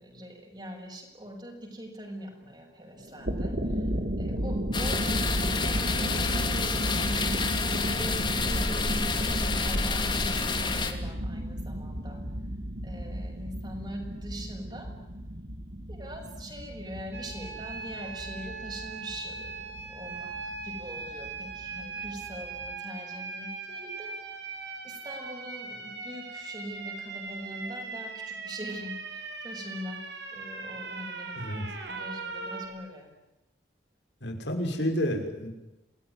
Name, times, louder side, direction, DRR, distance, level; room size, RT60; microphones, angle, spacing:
voice 1, 0.0-5.3 5.5-7.4 7.8-12.2 12.8-15.0 15.9-24.1 24.8-30.0 30.3-31.5 31.8-33.1, equal, 25° right, 2 dB, 7.1 m, -42 dB
sound 1, 3.1-22.7, equal, 55° right, 2.7 m, -34 dB
sound 2, 4.7-10.9, left 4 dB, 25° left, 2.8 m, -29 dB
sound 3, 17.1-32.7, right 4 dB, 80° right, 6.8 m, -39 dB
voice 2, 34.2-35.5, equal, 85° left, 4 dB, 6.2 m, -30 dB
28.5 x 20.0 x 10.0 m, 0.99 s
head